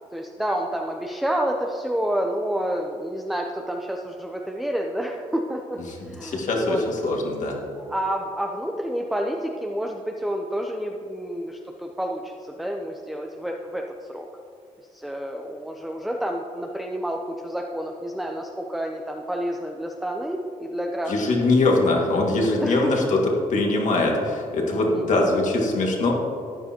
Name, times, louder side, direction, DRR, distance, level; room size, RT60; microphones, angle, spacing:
voice 1, 0.1-5.8 6.1-6.8 7.8-14.3 14.9-21.4 22.6-23.1 24.9-25.3, equal, ahead, 1 dB, 0.6 m, -29 dB
voice 2, 6.2-6.8 7.0-7.6 21.1-23.2 23.5-26.1, left 2 dB, 60° left, -1 dB, 2.0 m, -22 dB
13.5 x 9.5 x 3.0 m, 2.4 s
cardioid pair, 90°, 14 cm